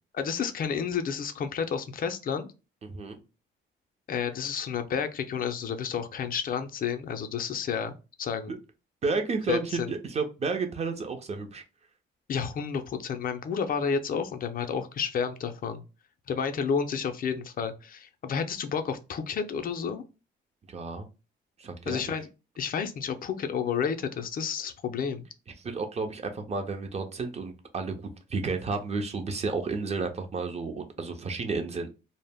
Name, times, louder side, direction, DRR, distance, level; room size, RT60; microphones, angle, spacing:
voice 1, 0.1-2.5 4.1-8.5 9.5-9.9 12.3-15.8 16.3-20.0 21.9-22.3 22.6-25.3, left 6 dB, 45° left, 0.4 m, -31 dB
voice 2, 2.8-3.2 8.5-8.6 9.0-11.6 20.7-21.1 21.6-22.1 25.6-31.9, right 4 dB, 35° right, 0.5 m, -32 dB
2.0 x 2.0 x 3.4 m
cardioid pair, 90°, 20 cm